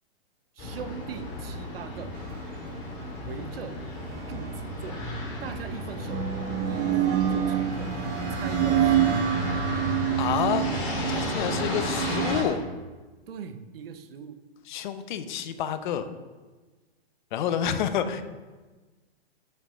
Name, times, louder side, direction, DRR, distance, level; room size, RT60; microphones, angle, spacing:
sound 1, 0.6-12.4, left 2 dB, 35° left, 3.1 m, -33 dB
voice 1, 0.6-2.1 3.2-3.8 4.3-5.1 5.4-6.3 6.7-8.0 8.3-9.3 13.3-14.4, right 7 dB, 65° right, 10 dB, 0.9 m, -40 dB
sound 2, 4.1-5.0 5.9-12.4, right 11 dB, 20° right, 0.5 m, -27 dB
voice 2, 10.2-10.7 11.1-12.6 14.7-16.1 17.3-18.2, left 9 dB, 50° left, 10 dB, 0.8 m, -28 dB
7.6 x 6.9 x 5.6 m, 1.3 s
hypercardioid pair, 140°, 31 cm